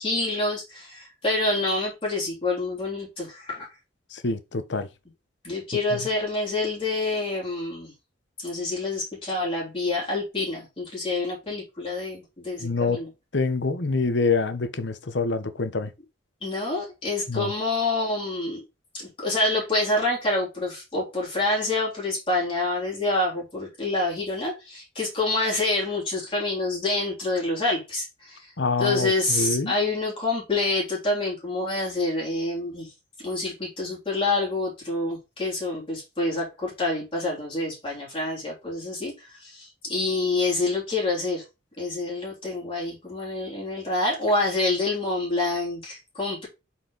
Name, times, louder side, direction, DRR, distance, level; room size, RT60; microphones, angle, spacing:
voice 1, 0.0-3.7 5.4-7.9 8.4-13.1 16.4-18.6 18.9-28.5 28.8-32.9 33.2-41.4 41.8-46.5, left 2 dB, 30° left, 3.4 m, -27 dB
voice 2, 4.1-4.9 5.9-6.0 12.6-13.0 13.3-15.9 17.3-17.5 28.6-29.7, left 3 dB, 75° left, 0.9 m, -26 dB
8.1 x 4.5 x 4.0 m
head